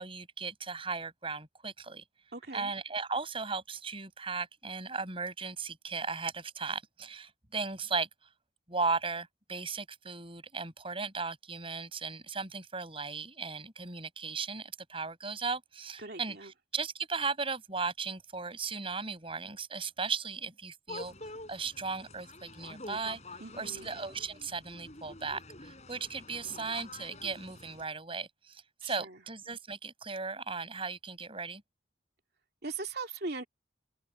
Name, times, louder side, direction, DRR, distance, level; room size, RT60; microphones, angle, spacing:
voice 1, 0.0-2.0 2.5-8.1 8.7-31.6, right 4 dB, 30° right, 7.6 m, -37 dB
voice 2, 2.3-2.7 16.0-16.5 23.4-23.9 28.8-29.2 32.6-33.5, right 3 dB, 60° right, 2.9 m, -40 dB
sound 1, 20.9-27.8, left 2 dB, 35° left, 7.6 m, -47 dB
head